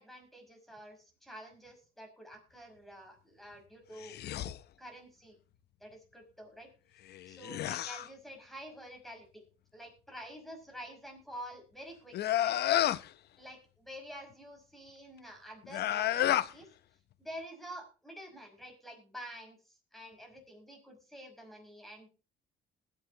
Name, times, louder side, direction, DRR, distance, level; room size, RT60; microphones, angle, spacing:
voice 1, 0.0-4.2 4.8-5.4 5.8-6.7 7.3-9.4 9.7-12.6 13.4-16.7 17.2-22.1, equal, ahead, 3 dB, 5.7 m, -48 dB
sound 1, 4.0-4.6 7.1-8.1 12.1-13.1 15.6-16.5, left 12 dB, 60° left, 0.7 m, -30 dB
20.5 x 8.4 x 2.8 m, 0.34 s
cardioid pair, 115°, 19 cm